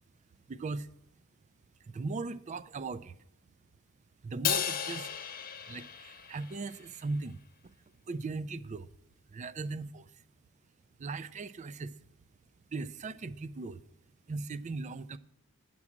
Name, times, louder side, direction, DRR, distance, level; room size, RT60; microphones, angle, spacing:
voice 1, 0.5-0.9 1.9-3.2 4.2-5.1 5.7-7.7 8.1-8.9 9.3-10.1 11.0-12.0 12.7-13.8 14.3-15.2, right 3 dB, 30° right, 0.4 m, -38 dB
Crash cymbal, 4.4-6.8, left 9 dB, 40° left, 0.9 m, -34 dB
9.7 x 6.1 x 7.2 m
head